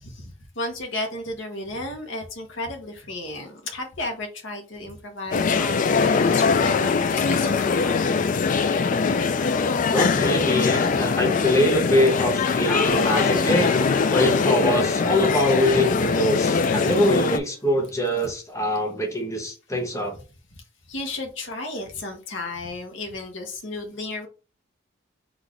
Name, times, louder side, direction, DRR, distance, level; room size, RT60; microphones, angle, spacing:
voice 1, 0.0-8.6 16.2-16.3 20.9-24.3, left 2 dB, 65° left, 3 dB, 1.0 m, -34 dB
sound 1, 5.3-17.4, left 5 dB, 40° left, 0.3 m, -22 dB
voice 2, 9.8-13.7 14.1-20.2, equal, 15° left, 1 dB, 0.8 m, -23 dB
sound 2, 12.9-16.9, left 2 dB, 85° left, 1.3 m, -35 dB
4.0 x 2.5 x 4.6 m, 0.35 s
head